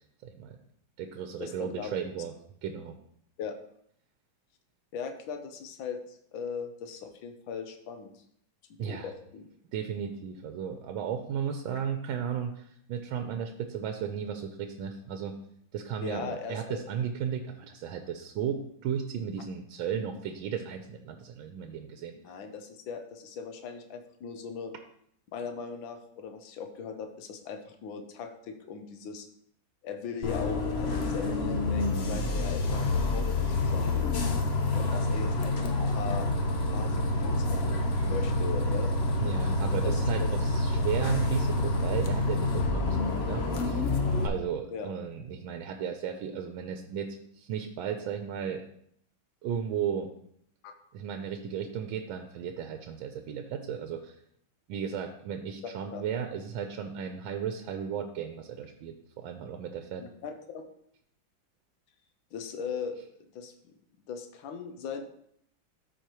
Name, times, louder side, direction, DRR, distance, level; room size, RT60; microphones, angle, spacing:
voice 1, 0.2-0.6 1.0-2.3 2.6-2.9 8.8-9.1 9.7-15.3 15.7-22.1 39.2-43.9 44.2-48.6 49.4-50.1 50.9-54.1 54.7-60.0, right 8 dB, 90° right, 6 dB, 1.4 m, -35 dB
voice 2, 1.4-1.9 3.4-3.6 4.9-8.1 8.7-9.5 16.0-16.8 22.2-24.7 25.3-29.3 29.8-34.0 34.7-36.3 36.7-38.9 39.8-40.0 44.7-44.9 50.6-50.7 55.9-56.0 60.0-60.6 62.3-63.0 63.3-63.7 64.1-65.0, left 6 dB, 80° left, 5 dB, 1.6 m, -39 dB
Bus, 30.2-44.3, left 2 dB, 50° left, 0.7 m, -28 dB
13.0 x 4.8 x 3.0 m, 0.69 s
omnidirectional pair, 2.1 m